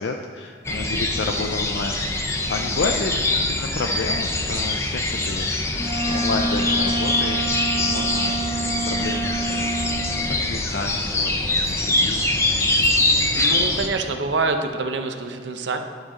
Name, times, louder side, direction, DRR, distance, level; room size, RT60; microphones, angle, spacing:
voice 1, 0.0-5.5 5.7-8.4 8.9-9.7 10.3-12.3, left 3 dB, 70° left, 3 dB, 0.5 m, -31 dB
sound 1, 0.6-13.9, left 2 dB, 15° left, 0.6 m, -23 dB
Wind instrument woodwind instrument, 5.7-10.1, right 2 dB, 20° right, 1.2 m, -27 dB
voice 2, 13.3-15.8, right 3 dB, 75° right, 6 dB, 0.7 m, -26 dB
11.0 x 6.5 x 3.7 m, 2.1 s
head